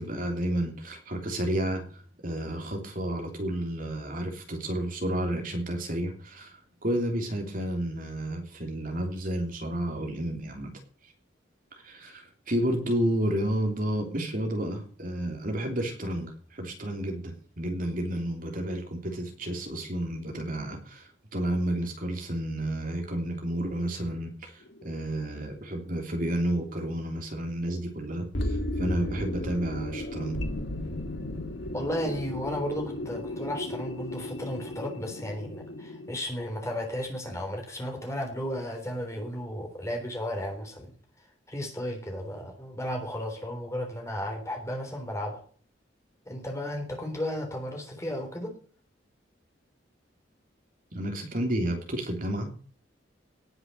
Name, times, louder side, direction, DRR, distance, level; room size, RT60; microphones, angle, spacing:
voice 1, 0.0-10.7 11.0-11.1 11.7-30.4 50.9-52.5, right 1 dB, 45° right, 3 dB, 3.2 m, -31 dB
sound 1, 24.6-25.2 25.8-25.9 28.3-36.2, left 1 dB, 70° left, 2.3 m, -34 dB
voice 2, 31.7-40.9 41.5-45.4 46.3-48.6, left 1 dB, 15° left, 2 dB, 3.6 m, -34 dB
18.5 x 7.9 x 6.7 m, 0.43 s
head